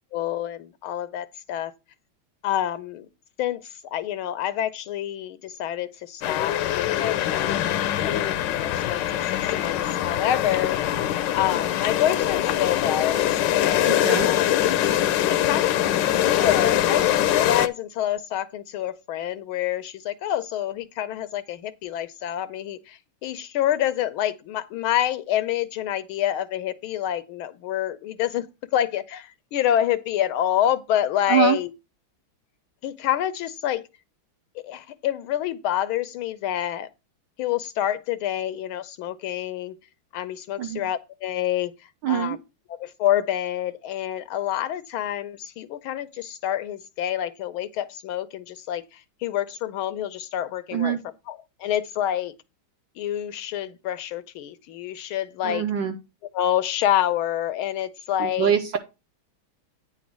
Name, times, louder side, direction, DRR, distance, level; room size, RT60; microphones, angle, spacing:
voice 1, 0.1-1.7 2.4-3.1 3.4-9.2 9.5-10.8 11.3-14.5 15.3-28.5 28.7-31.7 32.8-33.8 34.6-36.9 37.4-39.7 40.1-41.7 42.1-42.4 42.7-48.8 49.2-51.0 51.3-52.3 53.0-55.6 56.3-58.6, left 11 dB, 85° left, 1.6 m, -27 dB
sound 1, 6.2-17.7, left 12 dB, 70° left, 1.2 m, -23 dB
voice 2, 13.9-14.3 31.3-31.6 40.6-40.8 42.0-42.4 50.7-51.0 55.4-55.9 58.2-58.8, right 9 dB, 70° right, 1.4 m, -24 dB
9.4 x 4.1 x 6.0 m
omnidirectional pair, 2.3 m